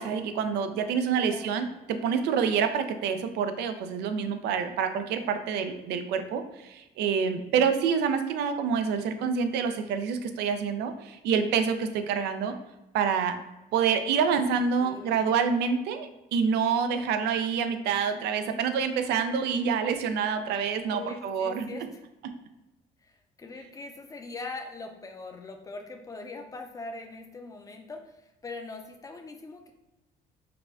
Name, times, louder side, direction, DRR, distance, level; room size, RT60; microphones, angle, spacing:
voice 1, 0.0-12.6 12.9-13.4 13.7-21.7, right 6 dB, 80° right, 8 dB, 0.5 m, -27 dB
voice 2, 1.2-1.7 14.8-15.2 20.8-22.0 23.0-29.7, left 3 dB, 20° left, 4 dB, 0.6 m, -42 dB
4.9 x 2.2 x 3.5 m, 1.0 s
cardioid pair, 110°, 17 cm